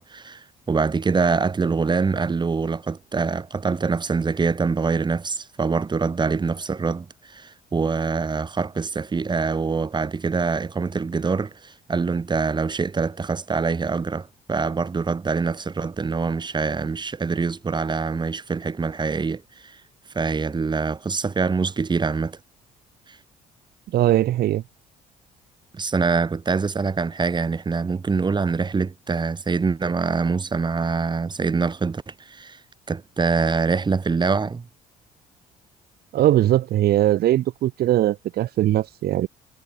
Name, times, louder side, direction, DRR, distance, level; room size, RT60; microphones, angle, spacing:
voice 1, 0.0-19.4 20.1-22.4 25.7-32.6 32.9-34.7, right 4 dB, 25° right, 7.2 m, -24 dB
voice 2, 23.9-24.6 36.1-39.3, right 13 dB, 65° right, 2.9 m, -20 dB
cardioid pair, 110°, 17 cm